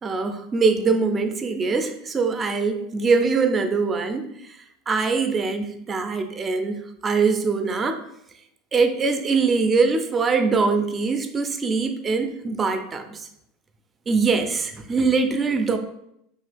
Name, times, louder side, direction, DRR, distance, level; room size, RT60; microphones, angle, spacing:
voice 1, 0.0-8.0 8.7-13.3 14.1-15.8, right 4 dB, 25° right, 8 dB, 0.4 m, -23 dB
2.8 x 2.4 x 3.3 m, 0.78 s
hypercardioid pair, 85°, 0 cm